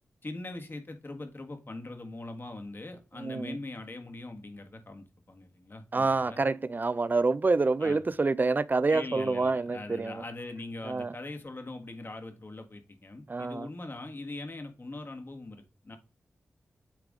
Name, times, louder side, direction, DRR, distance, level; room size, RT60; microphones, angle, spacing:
voice 1, 0.2-6.4 7.8-8.1 8.9-16.0, left 2 dB, 45° left, 1.7 m, -41 dB
voice 2, 3.2-3.6 5.9-10.2 10.8-11.1 13.3-13.7, right 3 dB, 35° right, 0.5 m, -27 dB
8.1 x 3.5 x 3.8 m
cardioid pair, 40°, 5 cm